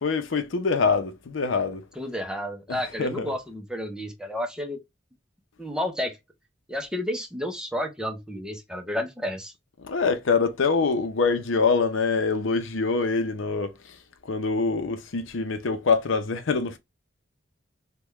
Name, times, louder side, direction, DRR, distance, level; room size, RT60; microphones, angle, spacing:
voice 1, 0.0-1.8 2.7-3.3 9.8-14.0 14.2-16.8, left 4 dB, 75° left, 0.6 m, -25 dB
voice 2, 2.0-4.8 5.6-6.2 6.7-9.5, left 1 dB, 5° right, 0.5 m, -31 dB
3.5 x 2.2 x 2.9 m
head